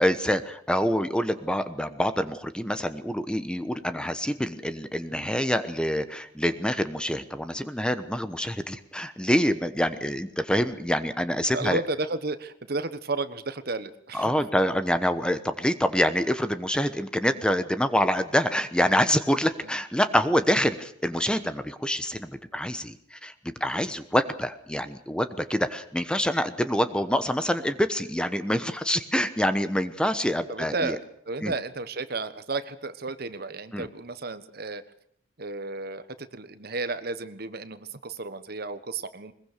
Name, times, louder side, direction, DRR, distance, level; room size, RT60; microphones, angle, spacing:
voice 1, 0.0-11.8 14.1-23.3 23.6-31.0 31.4-31.5 33.7-33.9, equal, 5° left, 11 dB, 1.1 m, -26 dB
voice 2, 11.5-14.3 19.6-19.7 30.5-34.8 35.4-39.3, right 3 dB, 55° right, 12 dB, 1.3 m, -33 dB
21.5 x 21.5 x 6.8 m, 0.65 s
head